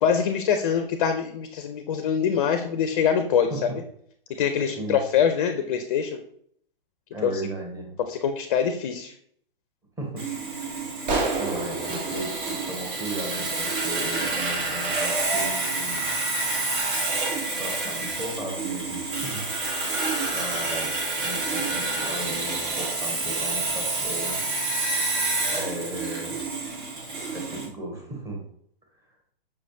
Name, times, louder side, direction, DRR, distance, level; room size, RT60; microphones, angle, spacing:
voice 1, 0.0-3.5 4.4-6.2 7.2-7.3 8.1-9.1, left 7 dB, 40° left, 7 dB, 0.4 m, -24 dB
voice 2, 7.1-8.0 10.0-10.3 11.4-16.1 17.6-24.4 25.5-26.4 27.3-28.4, right 1 dB, 10° right, -1 dB, 1.0 m, -36 dB
Sawing, 10.2-27.7, right 3 dB, 60° right, 1.6 m, -28 dB
sound 1, 11.1-13.7, right 3 dB, 45° right, 1.1 m, -30 dB
5.6 x 3.2 x 2.7 m, 0.66 s
hypercardioid pair, 140°, 29 cm